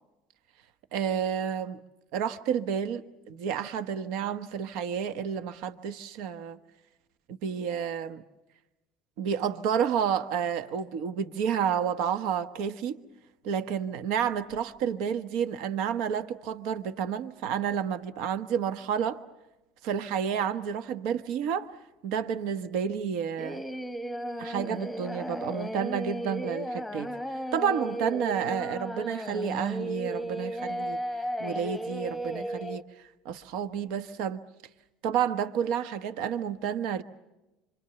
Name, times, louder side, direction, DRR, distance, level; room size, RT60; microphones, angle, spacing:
voice 1, 0.9-1.8 2.1-6.6 7.3-8.2 9.2-13.0 13.4-19.2 19.8-21.8 22.0-23.6 24.4-31.0 31.4-32.8 33.2-34.4 35.0-37.0, right 8 dB, 70° right, 1.2 m, -30 dB
Singing, 23.4-32.8, equal, ahead, 1.1 m, -35 dB
27.0 x 26.5 x 6.9 m
cardioid pair, 155°, 0 cm